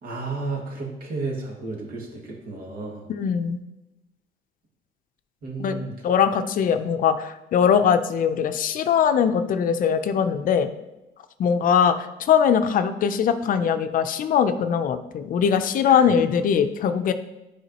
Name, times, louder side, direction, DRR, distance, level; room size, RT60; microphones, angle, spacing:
voice 1, 0.0-3.1 5.4-5.9 15.8-16.0, right 3 dB, 60° right, -1 dB, 2.1 m, -32 dB
voice 2, 3.1-3.6 5.6-5.8 6.0-10.7 11.4-12.0 12.3-17.1, left 7 dB, 55° left, 9 dB, 0.5 m, -21 dB
9.9 x 4.9 x 2.9 m, 0.97 s
cardioid pair, 110°, 17 cm